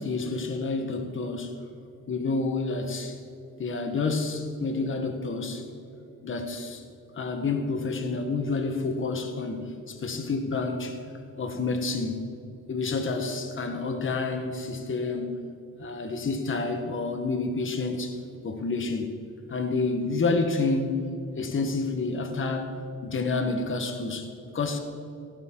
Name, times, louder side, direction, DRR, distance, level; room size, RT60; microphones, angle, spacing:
voice 1, 0.0-1.5 2.1-3.2 3.6-5.7 6.2-6.8 7.1-11.0 11.4-12.3 12.7-15.4 15.8-18.2 18.4-19.1 19.5-21.0 21.3-22.8 23.0-24.8, left 3 dB, 40° left, 5 dB, 1.2 m, -29 dB
17.0 x 11.0 x 3.8 m, 2.7 s
cardioid pair, 110°, 32 cm